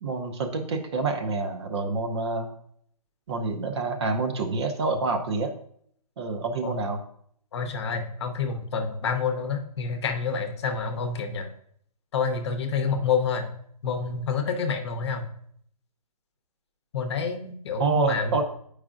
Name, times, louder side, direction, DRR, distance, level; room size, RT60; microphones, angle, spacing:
voice 1, 0.0-2.5 3.3-5.5 6.2-7.0 17.8-18.4, right 4 dB, 45° right, 5 dB, 0.8 m, -27 dB
voice 2, 7.5-11.5 12.1-13.5 13.8-15.3 16.9-18.4, left 5 dB, 45° left, 6 dB, 0.8 m, -28 dB
8.6 x 4.8 x 2.5 m, 0.65 s
hypercardioid pair, 155°, 20 cm